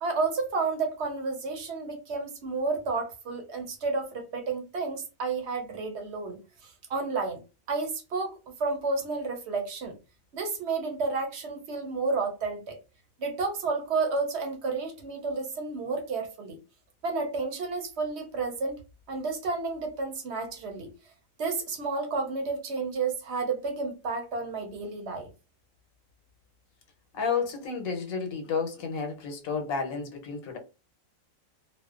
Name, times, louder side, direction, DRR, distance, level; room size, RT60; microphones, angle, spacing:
voice 1, 0.0-7.4 7.7-10.0 10.3-12.8 13.2-16.6 17.0-18.8 19.1-20.9 21.4-25.3, right 4 dB, 65° right, 0.8 m, -31 dB
voice 2, 27.1-30.6, left 5 dB, 90° left, 1.1 m, -31 dB
2.6 x 2.1 x 2.3 m
omnidirectional pair, 1.4 m